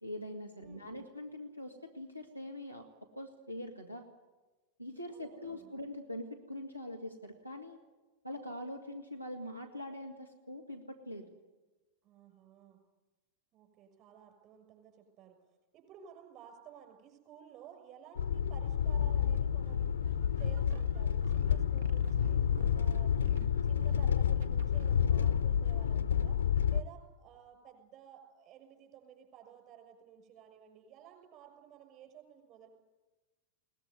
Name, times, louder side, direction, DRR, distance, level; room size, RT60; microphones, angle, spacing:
voice 1, 0.0-2.9 3.2-4.1 4.8-7.8 8.2-11.3, left 1 dB, 90° right, 4 dB, 1.8 m, -43 dB
voice 2, 0.6-1.1 5.1-5.7 12.0-12.8 13.5-15.4 15.7-20.0 20.4-22.4 22.7-23.3 23.6-26.4 26.7-32.7, right 9 dB, 35° right, 5 dB, 6.5 m, -55 dB
sound 1, 18.2-26.8, left 8 dB, 70° left, 0.7 m, -29 dB
sound 2, 19.6-25.3, right 7 dB, 60° right, 1.5 m, -50 dB
21.5 x 19.0 x 9.7 m, 1.2 s
figure-of-eight pair, 90°, 0 cm